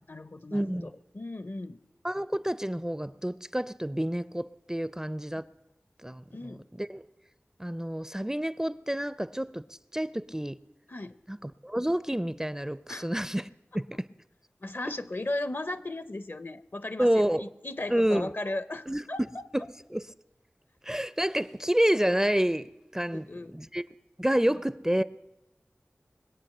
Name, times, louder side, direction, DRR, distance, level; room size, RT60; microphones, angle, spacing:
voice 1, 0.0-1.8 6.3-6.7 10.9-11.2 12.9-13.1 14.6-19.4 23.1-23.6 24.5-24.6, left 2 dB, 50° left, 14 dB, 0.6 m, -36 dB
voice 2, 0.5-0.9 2.0-5.4 6.0-7.0 7.6-9.6 9.9-10.6 11.3-13.5 13.7-14.1 17.0-17.4 17.9-18.3 18.9-19.0 19.5-19.6 19.9-20.1 20.8-23.3 23.5-23.8 24.2-25.0, equal, 10° right, 16 dB, 0.4 m, -28 dB
21.5 x 8.4 x 6.6 m, 0.93 s
wide cardioid pair, 45°, 5 cm